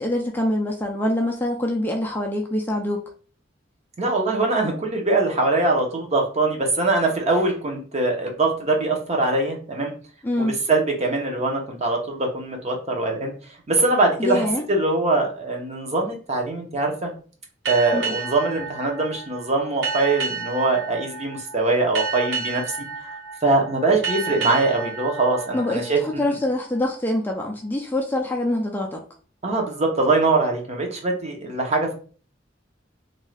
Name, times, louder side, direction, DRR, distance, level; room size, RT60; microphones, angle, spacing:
voice 1, 0.0-3.0 10.2-10.6 14.2-14.6 17.9-18.0 25.5-29.0, left 1 dB, 10° left, 1 dB, 0.4 m, -25 dB
voice 2, 4.0-9.9 10.4-13.3 13.7-17.1 17.7-22.6 23.0-23.1 23.4-26.3 29.4-31.9, right 2 dB, 35° right, 1 dB, 0.8 m, -22 dB
sound 1, 17.7-26.8, right 4 dB, 85° right, 0.9 m, -31 dB
2.6 x 2.3 x 3.2 m, 0.40 s
head